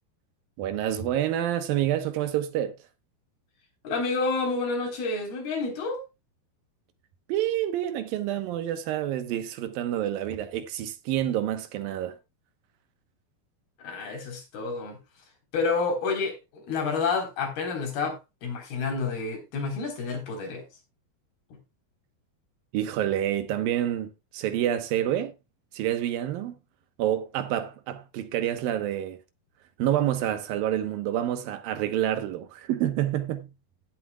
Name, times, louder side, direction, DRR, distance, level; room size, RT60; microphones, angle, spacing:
voice 1, 0.6-2.8 7.3-12.2 22.7-25.3 25.7-26.6 27.0-29.2 29.8-33.5, right 11 dB, 75° right, 2.8 m, -28 dB
voice 2, 3.8-6.0 13.8-15.0 15.5-20.6, left 4 dB, 90° left, 5.7 m, -29 dB
17.0 x 7.9 x 2.3 m
omnidirectional pair, 4.3 m